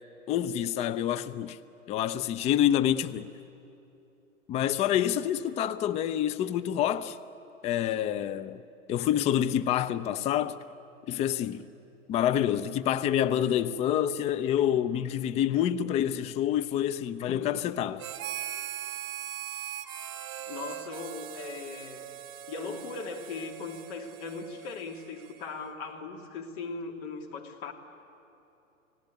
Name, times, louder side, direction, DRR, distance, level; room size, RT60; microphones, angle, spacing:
voice 1, 0.3-1.6 1.9-3.3 4.5-7.2 7.6-8.6 8.9-10.6 11.1-11.7 12.1-18.0, left 10 dB, 15° left, 0.5 m, -27 dB
voice 2, 17.3-17.7 19.5-19.8 20.5-22.1 22.5-27.7, left 4 dB, 40° left, 2.8 m, -39 dB
Harmonica, 18.0-25.7, right 11 dB, 30° right, 1.4 m, -40 dB
29.0 x 18.0 x 9.5 m
figure-of-eight pair, 100°, 41 cm